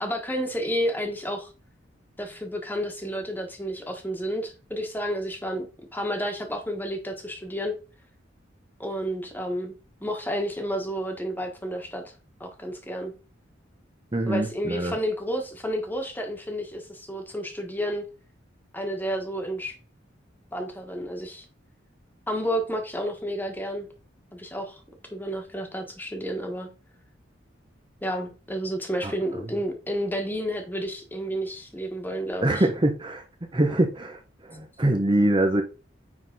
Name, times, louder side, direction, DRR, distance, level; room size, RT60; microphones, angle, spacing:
voice 1, 0.0-1.5 2.2-5.7 5.9-7.7 8.8-9.7 10.0-12.1 12.4-13.1 14.3-18.1 18.7-19.7 20.5-21.4 22.3-23.9 24.3-24.8 25.1-26.7 28.0-32.6, equal, 10° left, 1.4 m, -31 dB
voice 2, 14.1-15.0 29.0-29.1 32.4-33.2 33.5-35.6, right 1 dB, 25° right, 0.8 m, -24 dB
9.7 x 3.9 x 4.0 m
head